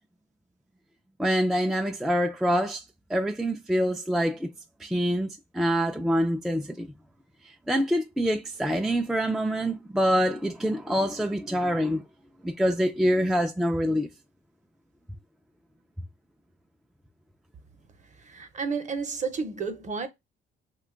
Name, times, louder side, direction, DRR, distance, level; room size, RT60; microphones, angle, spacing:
voice 1, 1.2-2.8 3.1-4.5 4.8-5.3 5.5-6.9 7.7-12.0 12.4-14.1, equal, ahead, 0.3 m, -25 dB
voice 2, 18.2-20.1, right 5 dB, 35° right, 0.7 m, -31 dB
2.7 x 2.2 x 3.7 m
cardioid pair, 90°, 20 cm